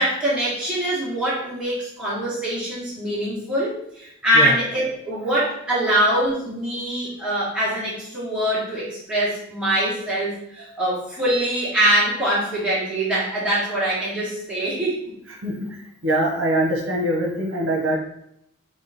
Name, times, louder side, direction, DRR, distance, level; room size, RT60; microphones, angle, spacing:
voice 1, 0.0-15.0, right 1 dB, 5° right, -9 dB, 1.7 m, -23 dB
voice 2, 15.4-18.0, right 1 dB, 70° right, -1 dB, 1.0 m, -23 dB
3.7 x 3.1 x 4.1 m, 0.74 s
head